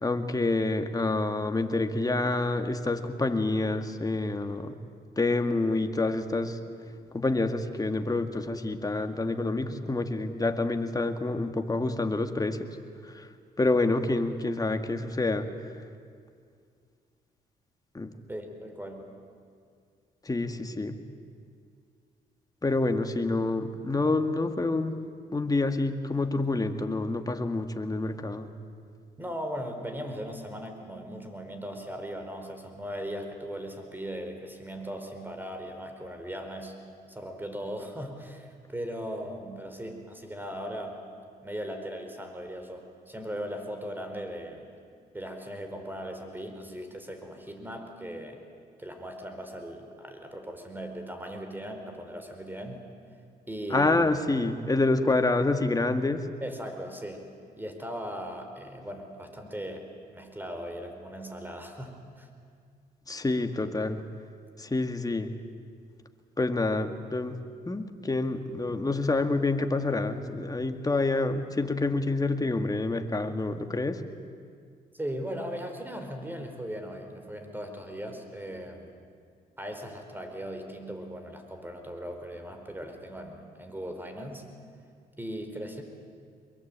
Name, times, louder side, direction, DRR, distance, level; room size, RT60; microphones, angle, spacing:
voice 1, 0.0-4.8 5.2-6.6 7.1-12.6 13.1-13.3 13.6-15.5 17.9-18.1 20.3-21.0 22.6-25.0 25.3-28.5 53.7-56.2 63.1-64.0 64.6-65.3 66.4-67.4 67.7-74.0, left 2 dB, 20° left, 7 dB, 2.1 m, -27 dB
voice 2, 18.3-19.1 29.2-36.7 37.1-41.0 41.4-44.7 45.1-48.4 48.8-52.8 53.5-54.2 56.4-57.2 57.6-59.9 60.1-62.3 74.9-78.9 79.6-84.4 85.2-85.8, equal, 10° right, 5 dB, 4.8 m, -38 dB
23.5 x 22.5 x 8.9 m, 2.2 s
supercardioid pair, 70°, 17 cm